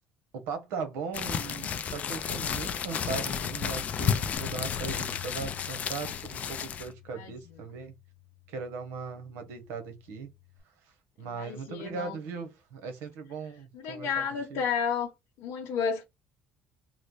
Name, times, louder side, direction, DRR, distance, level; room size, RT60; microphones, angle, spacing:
voice 1, 0.3-8.0 8.5-10.3 11.2-14.1 14.5-14.6, right 5 dB, 80° right, 0.8 m, -38 dB
sound 1, 1.1-6.9, left 8 dB, 35° left, 0.3 m, -32 dB
Bass guitar, 4.4-10.6, left 14 dB, 20° right, 1.4 m, -48 dB
voice 2, 11.2-12.2 13.7-15.1 15.4-16.0, left 6 dB, 70° left, 0.9 m, -32 dB
3.1 x 2.0 x 3.8 m
cardioid pair, 160°, 4 cm